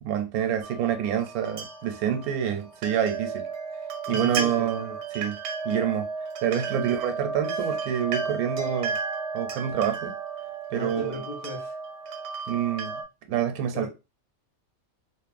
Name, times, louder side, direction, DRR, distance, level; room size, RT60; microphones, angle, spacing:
voice 1, 0.0-3.5 4.1-4.9 5.1-5.4 5.6-6.1 6.4-9.0 9.3-10.1 10.7-11.2 12.5-13.0 13.3-13.9, right 9 dB, 85° right, 1.0 m, -27 dB
sound 1, 0.6-13.0, right 5 dB, 65° right, 0.7 m, -33 dB
voice 2, 4.1-5.0 6.8-6.9 7.5-7.6 10.7-11.8 13.7-13.9, left 1 dB, 70° left, 0.4 m, -38 dB
2.9 x 2.0 x 2.4 m
omnidirectional pair, 1.5 m